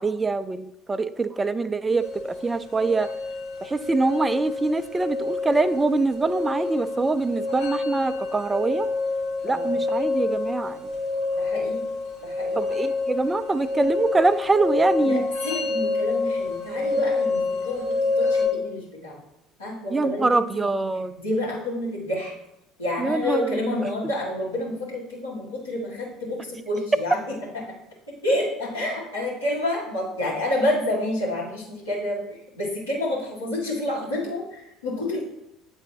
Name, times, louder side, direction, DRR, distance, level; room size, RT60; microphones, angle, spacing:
voice 1, 0.0-3.1 3.6-8.9 9.4-10.9 12.6-15.3 19.9-21.1 23.0-23.9, right 3 dB, 20° right, 13 dB, 0.4 m, -24 dB
sound 1, 2.0-18.5, left 3 dB, 60° left, 1.5 m, -27 dB
voice 2, 11.4-11.8 12.2-12.6 15.0-17.8 18.2-19.2 19.6-20.4 21.2-22.3 22.8-27.2 28.1-35.2, left 1 dB, 85° left, -7 dB, 2.1 m, -28 dB
8.9 x 3.8 x 2.8 m, 0.82 s
figure-of-eight pair, 65°, 0 cm